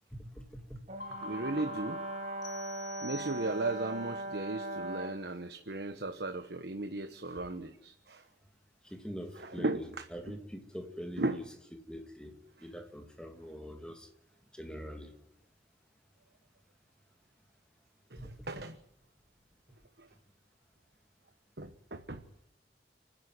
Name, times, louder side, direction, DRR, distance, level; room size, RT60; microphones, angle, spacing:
voice 1, 0.1-0.8 8.8-11.4 11.9-14.1 14.5-15.1 18.2-18.5, equal, 5° left, 5 dB, 2.4 m, -44 dB
Brass instrument, 0.9-5.2, right 2 dB, 40° right, 1.8 m, -40 dB
sound 1, 1.0-3.6, left 2 dB, 75° left, 3.2 m, -45 dB
voice 2, 1.2-2.0 3.0-8.2 9.4-10.1 11.2-11.4 18.1-18.8 20.0-20.1 21.6-22.2, right 2 dB, 70° right, 8 dB, 1.2 m, -36 dB
sound 2, 2.4-3.9, left 2 dB, 20° left, 2.0 m, -50 dB
29.5 x 10.5 x 9.5 m, 0.78 s
head